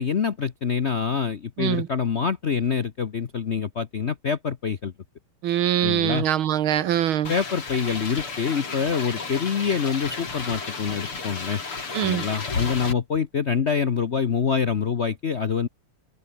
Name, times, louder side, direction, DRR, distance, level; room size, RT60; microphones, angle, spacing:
voice 1, 0.0-4.9 5.8-6.2 7.3-11.6 12.0-15.7, left 6 dB, 50° left, 0.8 m, -26 dB
voice 2, 5.4-7.3 11.9-12.3, right 11 dB, 70° right, 1.8 m, -23 dB
sound 1, 7.2-12.9, left 4 dB, 80° left, 5.3 m, -33 dB
omnidirectional pair, 2.4 m